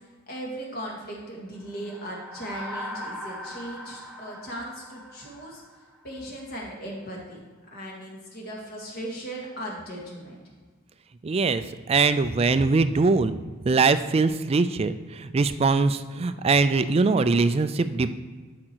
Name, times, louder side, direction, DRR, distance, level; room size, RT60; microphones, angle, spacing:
voice 1, 0.3-5.6 6.0-7.4 7.7-10.4, right 1 dB, 50° left, -2 dB, 2.1 m, -37 dB
sound 1, 1.7-6.2, equal, 5° right, 0.7 m, -40 dB
voice 2, 11.2-13.4 13.7-18.1, right 4 dB, 30° right, 12 dB, 0.3 m, -22 dB
11.5 x 5.0 x 4.6 m, 1.5 s
head